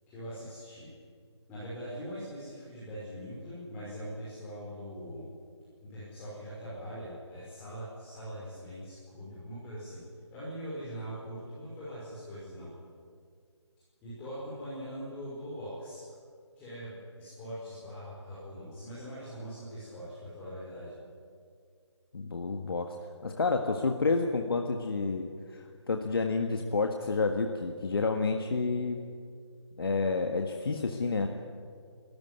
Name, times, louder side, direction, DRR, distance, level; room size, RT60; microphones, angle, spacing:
voice 1, 0.1-0.9 1.5-5.3 5.8-10.0 10.3-12.7 14.0-16.0 16.6-20.9, equal, 10° left, -10 dB, 5.6 m, -42 dB
voice 2, 22.1-23.0 23.2-25.3 25.5-29.0 29.8-31.3, left 4 dB, 50° left, 4 dB, 1.6 m, -29 dB
29.0 x 14.0 x 9.8 m, 2.2 s
figure-of-eight pair, 155°, 15 cm